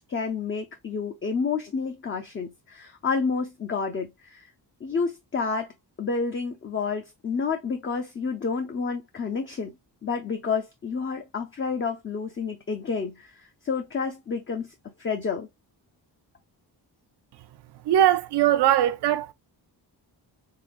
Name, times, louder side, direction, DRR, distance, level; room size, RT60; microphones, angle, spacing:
voice 1, 0.1-4.5 4.8-5.7 6.0-9.7 10.0-14.7 15.0-15.5, left 5 dB, 30° left, 0.5 m, -29 dB
voice 2, 17.9-19.3, right 11 dB, 75° right, 0.5 m, -20 dB
3.8 x 3.7 x 2.4 m
wide cardioid pair, 175°, 41 cm